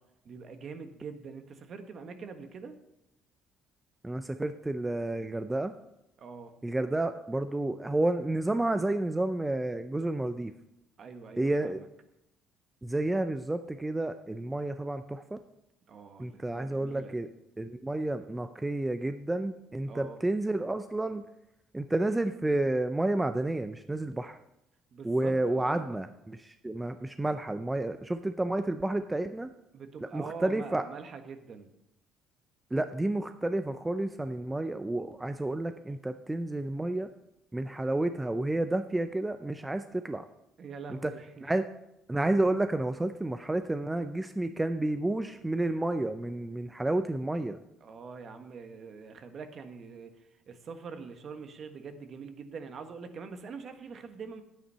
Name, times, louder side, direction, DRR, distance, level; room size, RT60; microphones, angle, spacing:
voice 1, 0.2-2.8 6.2-6.5 11.0-11.9 15.9-17.2 19.9-20.2 24.9-25.9 29.7-31.7 40.6-41.4 47.8-54.4, right 5 dB, 50° right, 8 dB, 1.3 m, -44 dB
voice 2, 4.0-5.7 6.6-10.5 11.4-11.8 12.8-15.4 16.2-17.3 17.6-21.2 21.7-24.4 25.0-29.5 30.1-30.9 32.7-37.1 37.5-40.2 40.9-41.1 41.4-41.6 42.1-47.6, right 2 dB, 10° right, 9 dB, 0.5 m, -30 dB
9.7 x 9.1 x 5.6 m, 0.85 s
cardioid pair, 100°, 0 cm